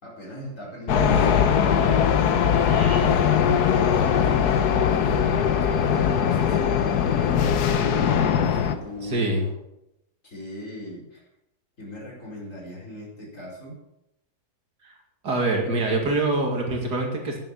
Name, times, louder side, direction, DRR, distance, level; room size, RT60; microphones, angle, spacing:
voice 1, 0.0-2.1 3.0-9.3 10.2-11.2 11.8-13.8, equal, 50° left, -3 dB, 5.3 m, -38 dB
sound 1, 0.9-8.8, left 8 dB, 75° left, 1.5 m, -21 dB
sound 2, 2.4-9.5, right 1 dB, 20° left, 3.7 m, -43 dB
voice 2, 2.5-3.1 9.0-9.4 14.8-15.0 15.2-17.4, right 2 dB, 80° right, 1 dB, 2.9 m, -25 dB
11.0 x 10.5 x 7.1 m, 0.85 s
omnidirectional pair, 1.7 m